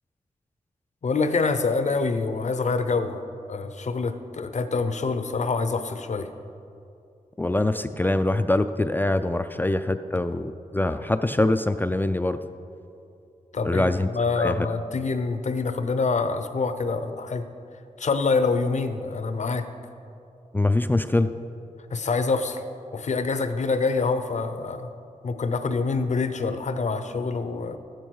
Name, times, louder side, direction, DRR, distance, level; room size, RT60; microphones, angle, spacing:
voice 1, 1.0-3.2 3.5-6.3 13.5-17.4 18.0-19.6 21.9-22.6 22.9-24.9 25.2-27.8, left 4 dB, 60° left, 9 dB, 0.8 m, -26 dB
voice 2, 7.4-12.4 13.6-14.1 14.4-14.7 20.5-21.3, left 2 dB, 15° left, 9 dB, 0.4 m, -24 dB
13.0 x 9.0 x 4.7 m, 2.6 s
wide cardioid pair, 80°, 14 cm